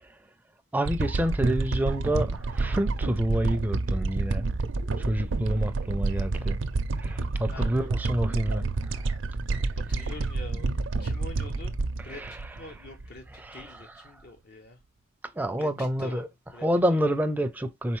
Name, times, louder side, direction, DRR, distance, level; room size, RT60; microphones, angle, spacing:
voice 1, 0.7-4.5 5.0-6.6 7.0-8.6 12.2-12.3 13.5-13.6 15.4-16.3 16.6-18.0, right 1 dB, 10° right, 0.4 m, -28 dB
sound 1, 0.9-13.2 13.6-13.7, right 3 dB, 80° right, 0.5 m, -29 dB
voice 2, 7.5-8.0 9.9-10.7 11.0-11.8 12.0-14.8 15.6-17.2, left 2 dB, 55° left, 0.6 m, -45 dB
4.3 x 3.8 x 3.1 m
head